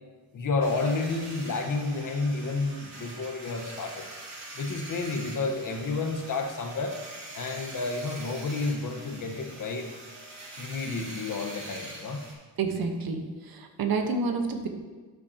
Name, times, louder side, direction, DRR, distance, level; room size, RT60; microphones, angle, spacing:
voice 1, 0.3-4.1 4.5-7.0 7.3-9.9 10.6-12.2, left 3 dB, 50° left, 4 dB, 1.2 m, -30 dB
sound 1, 0.6-12.3, right 2 dB, 40° right, 2.8 m, -44 dB
voice 2, 12.6-14.7, right 4 dB, 55° right, 5 dB, 1.2 m, -29 dB
12.0 x 8.1 x 2.9 m, 1.4 s
cardioid pair, 125°, 42 cm